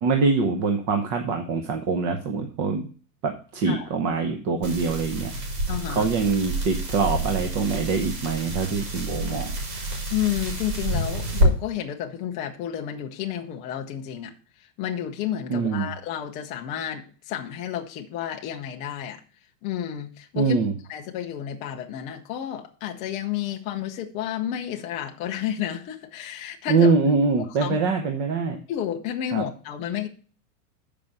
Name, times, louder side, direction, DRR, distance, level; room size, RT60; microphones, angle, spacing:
voice 1, 0.0-2.9 3.2-5.3 5.9-9.5 15.5-15.9 20.3-20.7 26.7-28.6 29.3-29.5, right 4 dB, 35° right, 4 dB, 1.0 m, -24 dB
sound 1, 4.6-11.5, right 1 dB, 80° right, 4.6 m, -28 dB
voice 2, 5.7-6.1 10.1-14.3 14.8-19.2 19.6-20.6 20.9-26.9 27.6-27.8 28.7-30.1, left 10 dB, 15° left, 2 dB, 0.4 m, -31 dB
6.6 x 5.2 x 7.1 m, 0.39 s
supercardioid pair, 145°, 48 cm